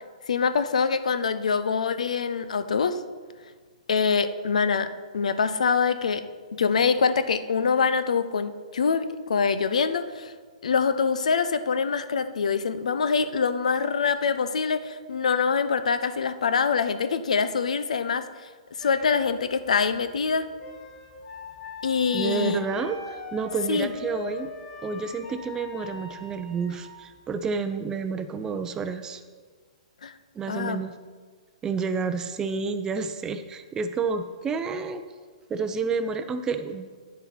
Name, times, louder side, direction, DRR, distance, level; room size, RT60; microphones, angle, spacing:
voice 1, 0.3-3.0 3.9-10.3 10.6-18.3 18.8-20.5 21.8-22.6 23.7-23.9 30.0-30.1 30.5-30.8, left 5 dB, 75° left, 12 dB, 0.6 m, -24 dB
sound 1, 18.8-27.5, left 4 dB, 20° left, 2.1 m, -41 dB
voice 2, 22.1-24.5 24.8-29.2 30.3-30.9 31.6-35.0 35.5-37.0, right 5 dB, 15° right, 9 dB, 0.6 m, -30 dB
9.5 x 6.9 x 4.4 m, 1.5 s
hypercardioid pair, 130°, 4 cm